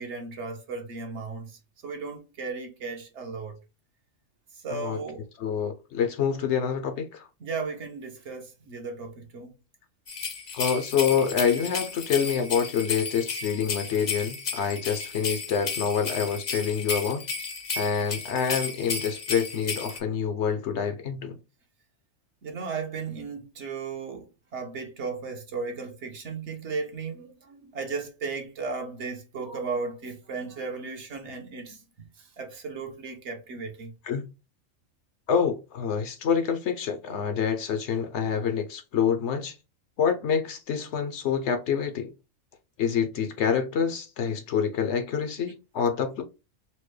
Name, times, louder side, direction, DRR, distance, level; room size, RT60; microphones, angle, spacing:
voice 1, 0.0-3.6 4.6-5.3 6.3-6.4 7.4-9.5 22.4-32.1 32.4-33.9, right 4 dB, 65° right, 1.1 m, -35 dB
voice 2, 4.7-5.0 5.4-7.3 10.5-17.2 17.8-21.4 34.0-34.3 35.3-39.6 40.0-42.1 42.8-46.2, left 7 dB, 65° left, 0.9 m, -27 dB
sound 1, 10.1-20.0, left 5 dB, 45° left, 0.6 m, -33 dB
4.3 x 2.0 x 3.1 m
omnidirectional pair, 1.4 m